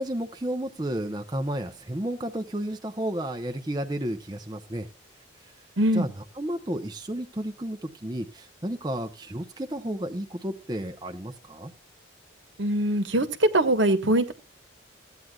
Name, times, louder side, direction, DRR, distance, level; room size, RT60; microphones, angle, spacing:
voice 1, 0.0-4.9 5.4-5.5 5.9-11.7, right 1 dB, 20° right, 5 dB, 0.7 m, -32 dB
voice 2, 5.8-6.1 12.6-14.3, right 1 dB, 65° right, 9 dB, 1.3 m, -22 dB
15.5 x 9.3 x 2.3 m, 0.28 s
head